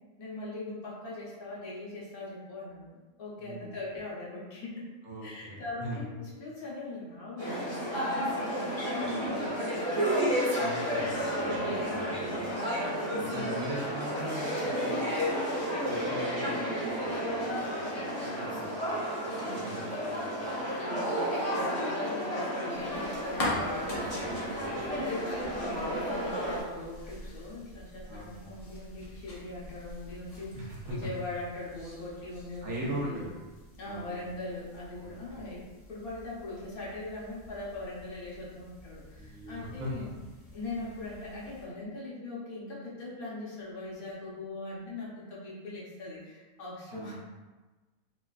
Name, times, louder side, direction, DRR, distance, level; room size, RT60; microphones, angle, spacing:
voice 1, 0.2-4.9 5.2-10.2 11.0-13.6 14.1-14.3 19.4-19.8 20.8-33.2 33.8-40.1 40.5-47.1, left 2 dB, 85° left, -6 dB, 1.3 m, -41 dB
voice 2, 3.4-3.7 5.0-6.0 9.0-9.2 10.6-11.5 11.8-12.4 13.3-15.2 15.8-16.7 17.0-17.8 18.2-20.3 20.5-20.6 24.3-24.8 28.0-28.4 30.6-31.1 32.6-33.3 33.8-34.2 35.0-35.4 39.1-39.9 46.9-47.1, equal, 60° right, -5 dB, 0.9 m, -41 dB
sound 1, 7.4-26.6, equal, 30° right, 1.1 m, -32 dB
sound 2, 22.7-41.7, left 1 dB, 55° left, 0.4 m, -44 dB
3.2 x 2.3 x 2.3 m, 1.2 s
omnidirectional pair, 1.5 m